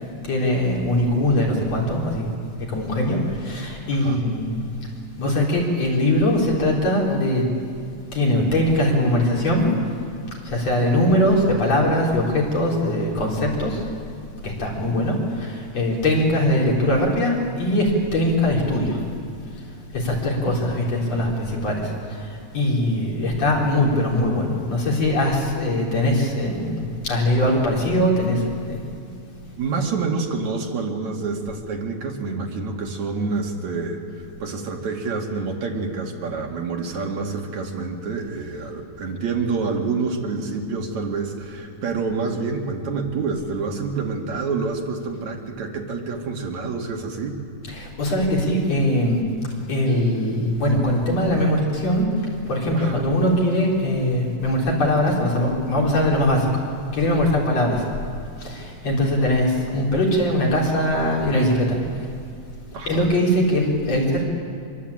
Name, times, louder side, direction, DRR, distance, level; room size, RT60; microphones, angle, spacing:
voice 1, 0.3-2.4 2.7-4.5 5.2-7.5 8.1-9.7 10.5-13.8 14.4-19.0 19.9-28.9 47.7-49.2 49.7-52.1 52.5-56.5 56.9-57.8 58.4-61.8 62.9-64.2, left 1 dB, 55° left, -2 dB, 5.5 m, -21 dB
voice 2, 3.9-4.2 20.5-20.6 29.6-34.0 34.4-47.4 52.7-53.1 62.7-63.0, right 4 dB, 70° right, 1 dB, 3.4 m, -27 dB
25.5 x 22.0 x 8.8 m, 2.3 s
omnidirectional pair, 3.5 m